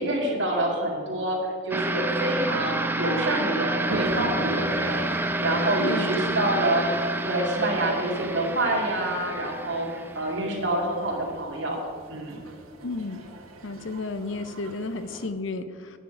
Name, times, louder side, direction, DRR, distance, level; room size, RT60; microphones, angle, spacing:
voice 1, 0.0-6.9 7.2-9.9 10.1-11.8 12.1-12.4, right 1 dB, 60° right, -1 dB, 2.4 m, -27 dB
sound 1, 1.7-10.8, right 1 dB, 10° right, 0.5 m, -29 dB
Toilet flush, 3.8-15.3, right 1 dB, 90° right, 1.3 m, -41 dB
voice 2, 5.8-6.5 12.8-13.2 13.6-16.0, left 3 dB, 65° left, 10 dB, 0.7 m, -33 dB
10.0 x 9.1 x 5.0 m, 2.1 s
head